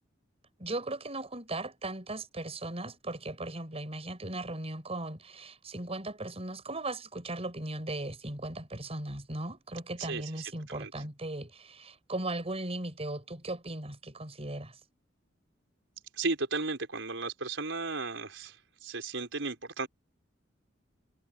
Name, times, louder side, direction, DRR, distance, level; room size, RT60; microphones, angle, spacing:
voice 1, 0.6-14.7, right 2 dB, 30° right, 5.9 m, -37 dB
voice 2, 10.0-10.9 16.2-18.6 18.8-19.9, right 3 dB, 75° right, 5.4 m, -35 dB
head